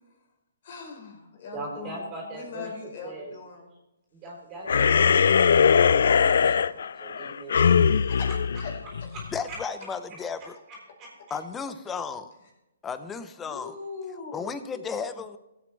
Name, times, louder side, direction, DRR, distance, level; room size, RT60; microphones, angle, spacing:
voice 1, 0.6-3.7 7.5-8.3 8.6-8.7 13.4-14.4, left 5 dB, 50° left, 1 dB, 4.6 m, -41 dB
voice 2, 1.5-2.7 3.0-3.3 4.1-7.9 8.3-8.4 9.1-9.6 10.7-11.4, right 2 dB, 25° right, -2 dB, 3.7 m, -41 dB
sound 1, 4.7-9.4, left 6 dB, 65° left, 0.3 m, -21 dB
voice 3, 9.3-10.6 11.3-12.3 12.8-13.7 14.3-15.4, left 5 dB, 10° left, 11 dB, 0.7 m, -34 dB
16.0 x 8.4 x 3.4 m, 0.95 s
hypercardioid pair, 145°, 0 cm